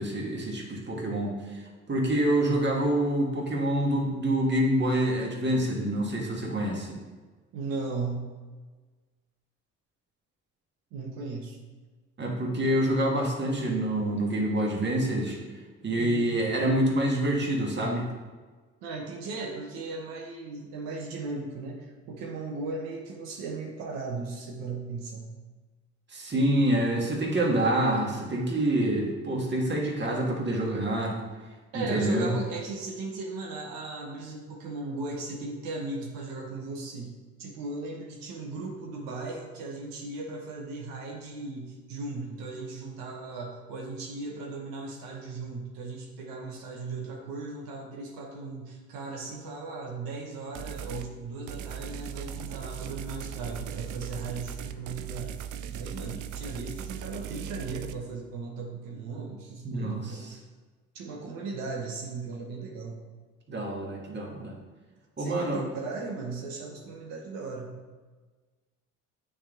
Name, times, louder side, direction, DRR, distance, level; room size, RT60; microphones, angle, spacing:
voice 1, 0.0-6.9 12.2-15.4 15.8-18.1 26.1-31.2 31.7-32.3 59.6-60.3 63.5-64.6 65.2-65.6, right 1 dB, 30° right, -1 dB, 1.7 m, -27 dB
voice 2, 7.5-8.3 10.9-11.6 16.0-16.3 18.8-25.3 31.7-55.4 55.7-60.4 60.9-63.0 65.2-67.8, right 3 dB, 85° right, -1 dB, 1.0 m, -37 dB
sound 1, 50.6-51.1 51.5-57.9, right 9 dB, 60° right, 0.5 m, -38 dB
8.7 x 3.6 x 3.7 m, 1.3 s
supercardioid pair, 75°, 34 cm